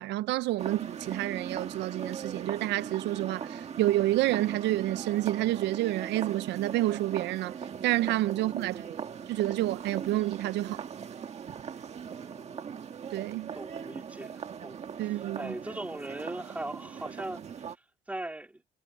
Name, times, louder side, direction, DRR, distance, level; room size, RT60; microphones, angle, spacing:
voice 1, 0.0-8.8 9.3-10.8 13.1-13.6 15.0-15.5, right 16 dB, 80° right, 0.4 m, -29 dB
sound 1, 0.6-17.7, right 7 dB, 40° right, 1.6 m, -40 dB
voice 2, 12.0-12.8 13.5-17.8 18.1-18.6, right 1 dB, 10° right, 2.5 m, -40 dB
cardioid pair, 145°, 18 cm